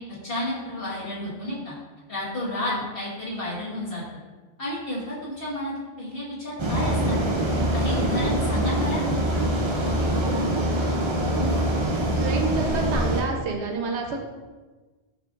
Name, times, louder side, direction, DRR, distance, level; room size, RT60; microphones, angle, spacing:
voice 1, 0.0-1.7 2.1-4.0 4.6-7.4 7.7-9.0, left 1 dB, 55° left, -10 dB, 1.8 m, -31 dB
sound 1, 6.6-13.2, right 1 dB, 40° right, 0.4 m, -24 dB
voice 2, 10.4-10.8 12.2-14.2, right 4 dB, 75° right, 2 dB, 0.9 m, -29 dB
5.3 x 3.8 x 2.5 m, 1.3 s
omnidirectional pair, 1.2 m